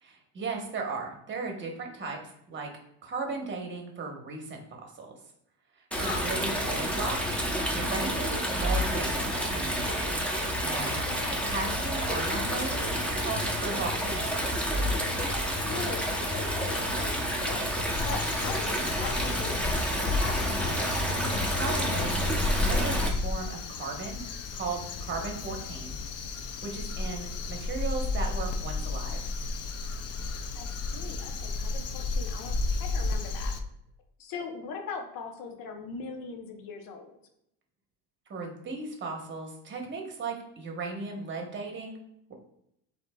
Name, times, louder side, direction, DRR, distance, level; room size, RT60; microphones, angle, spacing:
voice 1, 0.0-2.7 3.0-5.2 6.0-7.3 7.7-10.2 10.6-11.0 11.3-12.9 13.2-14.5 21.5-24.2 24.5-26.0 26.6-29.3 38.3-42.0, right 4 dB, 30° right, 1 dB, 0.9 m, -36 dB
Stream, 5.9-23.1, equal, 5° left, 0.6 m, -29 dB
voice 2, 11.1-11.4 15.6-17.7 18.0-20.8 30.5-33.5 34.2-37.1, left 5 dB, 60° left, 4 dB, 0.8 m, -40 dB
Crow, 17.9-33.6, left 3 dB, 45° left, 0.4 m, -33 dB
7.7 x 2.8 x 2.2 m, 0.78 s
cardioid pair, 140°, 38 cm